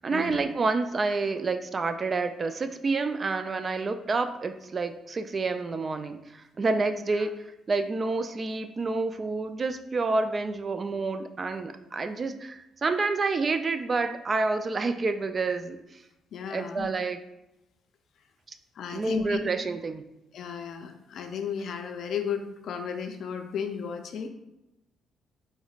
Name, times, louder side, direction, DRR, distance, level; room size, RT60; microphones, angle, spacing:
voice 1, 0.0-7.3 7.7-15.8 16.5-17.2 18.9-20.0, right 3 dB, 35° right, 9 dB, 0.3 m, -28 dB
voice 2, 16.3-16.9 18.7-19.4 20.3-24.3, left 7 dB, 70° left, 6 dB, 0.4 m, -34 dB
4.2 x 3.1 x 2.4 m, 0.89 s
cardioid pair, 90°, 0 cm